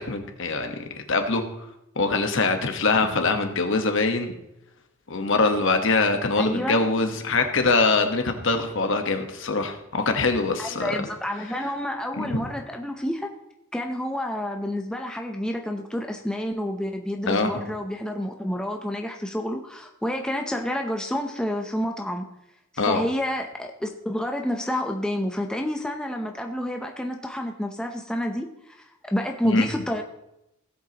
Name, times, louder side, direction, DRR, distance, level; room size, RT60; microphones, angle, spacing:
voice 1, 0.0-1.4 2.0-4.3 5.1-10.9 12.2-12.4 17.3-17.7 22.8-23.0 29.4-29.7, left 3 dB, 60° left, 6 dB, 1.2 m, -23 dB
voice 2, 6.4-6.9 10.6-13.3 13.7-22.3 22.7-30.0, equal, 5° left, 2 dB, 0.7 m, -29 dB
17.0 x 7.9 x 3.0 m, 0.86 s
head